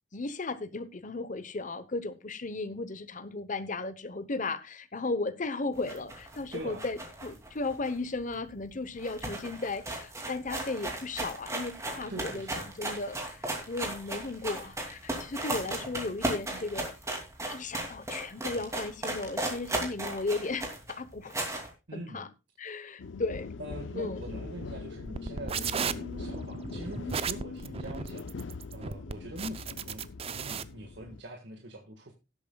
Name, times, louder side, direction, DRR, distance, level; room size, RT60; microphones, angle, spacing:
voice 1, 0.1-12.5 12.8-16.9 17.5-21.3 21.9-22.3 22.6-23.6 24.0-24.2, left 3 dB, 40° left, 0.9 m, -35 dB
sound 1, 5.8-8.4 8.7-8.8 9.0-21.7, right 1 dB, 15° right, 2.6 m, -36 dB
voice 2, 6.5-6.8 12.1-12.7 21.9-22.3 22.7-22.8 23.6-28.3 28.7-32.1, right 1 dB, 65° right, 1.6 m, -43 dB
sound 2, 23.0-31.2, left 4 dB, 70° left, 0.5 m, -41 dB
sound 3, 25.1-30.6, right 6 dB, 30° right, 0.5 m, -35 dB
17.5 x 8.5 x 2.3 m
head